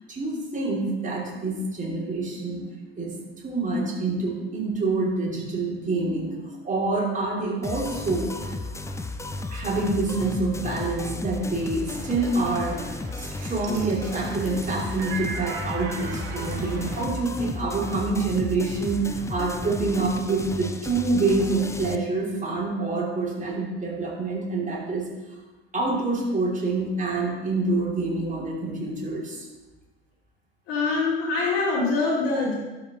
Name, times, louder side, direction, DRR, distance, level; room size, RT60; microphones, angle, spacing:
voice 1, 0.1-2.7 3.0-3.2 3.4-8.7 9.5-12.8 13.1-25.1 25.7-29.5, right 3 dB, 25° right, -3 dB, 3.1 m, -27 dB
sound 1, 7.6-21.9, left 2 dB, 10° left, 0.6 m, -34 dB
sound 2, 11.9-17.1, right 4 dB, 70° right, 1.7 m, -38 dB
voice 2, 30.7-32.5, left 3 dB, 60° left, -7 dB, 2.5 m, -24 dB
12.5 x 5.8 x 3.7 m, 1.1 s
hypercardioid pair, 65°, 30 cm